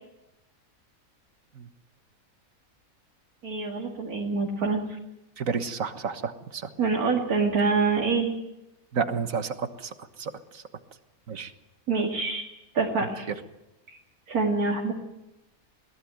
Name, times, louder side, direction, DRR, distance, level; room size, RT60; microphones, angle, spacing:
voice 1, 3.4-4.8 6.8-8.3 11.9-12.4 12.7-13.3 13.9-14.0 14.3-14.9, right 4 dB, 90° right, 0 dB, 2.6 m, -25 dB
voice 2, 5.4-6.7 8.9-10.6 11.3-11.5 13.0-13.4, right 6 dB, 65° right, 9 dB, 1.8 m, -31 dB
22.0 x 18.5 x 7.9 m, 0.93 s
omnidirectional pair, 1.5 m